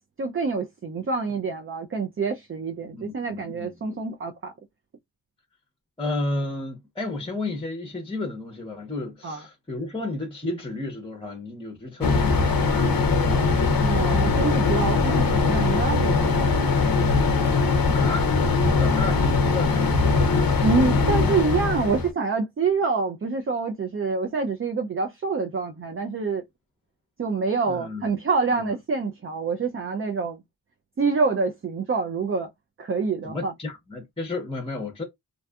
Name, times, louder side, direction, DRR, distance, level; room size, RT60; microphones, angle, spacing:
voice 1, 0.2-4.5 9.2-9.4 13.8-16.7 20.6-26.4 27.2-30.4 31.0-32.5 32.8-33.5, right 4 dB, 35° right, 0.4 m, -26 dB
voice 2, 2.9-3.7 6.0-13.5 17.9-18.3 18.7-20.5 27.6-28.2 28.5-28.7 33.2-35.0, left 2 dB, 15° left, 0.7 m, -33 dB
sound 1, 12.0-22.1, left 4 dB, 60° left, 0.5 m, -21 dB
2.6 x 2.3 x 2.2 m
wide cardioid pair, 80°, 40 cm